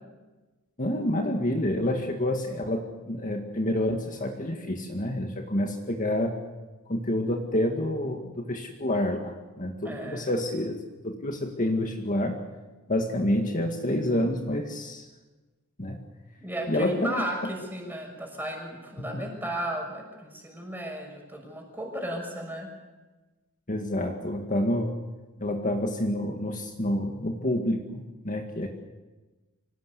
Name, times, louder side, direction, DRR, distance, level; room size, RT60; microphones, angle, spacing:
voice 1, 0.8-6.4 6.9-12.4 12.9-15.1 15.8-16.0 16.7-17.2 19.0-19.3 23.7-25.0 25.4-28.7, left 1 dB, 35° left, 2 dB, 2.0 m, -28 dB
voice 2, 9.8-10.3 16.4-22.7, right 1 dB, 10° right, 2 dB, 6.4 m, -34 dB
26.0 x 18.5 x 8.3 m, 1.2 s
head